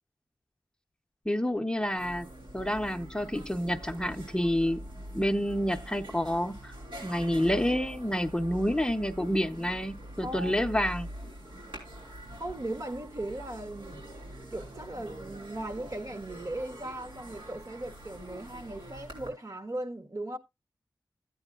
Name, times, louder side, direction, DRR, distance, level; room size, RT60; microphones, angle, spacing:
voice 1, 1.3-2.3 2.5-4.8 5.1-6.7 7.0-11.1, equal, 10° left, 0.8 m, -28 dB
sound 1, 1.5-1.6 1.8-19.3, equal, 90° right, 5.1 m, -44 dB
voice 2, 10.2-10.5 12.4-14.0 14.5-20.4, right 1 dB, 45° right, 1.5 m, -38 dB
14.5 x 9.2 x 2.4 m
wide cardioid pair, 70°, 8 cm